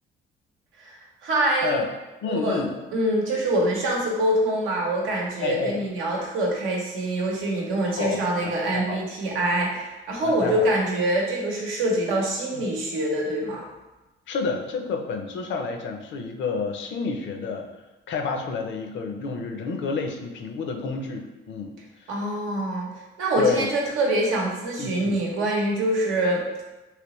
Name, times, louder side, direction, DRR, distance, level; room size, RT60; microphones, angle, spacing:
voice 1, 0.8-1.8 2.3-2.6 2.9-13.6 22.1-22.9 23.2-26.6, right 1 dB, 90° right, -2 dB, 0.9 m, -25 dB
voice 2, 2.2-2.7 5.4-5.8 7.8-9.0 10.2-10.7 12.5-12.6 14.3-17.7 18.1-22.1 23.4-23.7 24.8-25.2, left 4 dB, 70° left, 4 dB, 0.5 m, -29 dB
3.2 x 2.9 x 3.0 m, 1.1 s
cardioid pair, 90°, 20 cm